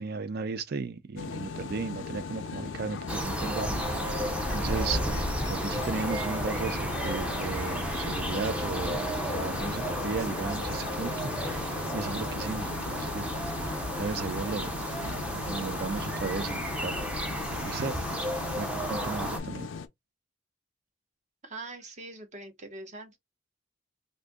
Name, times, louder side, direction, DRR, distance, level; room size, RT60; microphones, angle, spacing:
voice 1, 0.0-13.3 14.0-14.7 15.0-17.0 17.7-18.0 18.6-19.7, right 4 dB, 55° right, 0.5 m, -35 dB
sound 1, 1.2-19.9, left 5 dB, 90° left, 0.5 m, -38 dB
sound 2, 3.1-19.4, equal, 5° right, 0.5 m, -32 dB
voice 2, 21.4-23.2, right 2 dB, 40° right, 0.9 m, -43 dB
2.6 x 2.5 x 3.5 m
head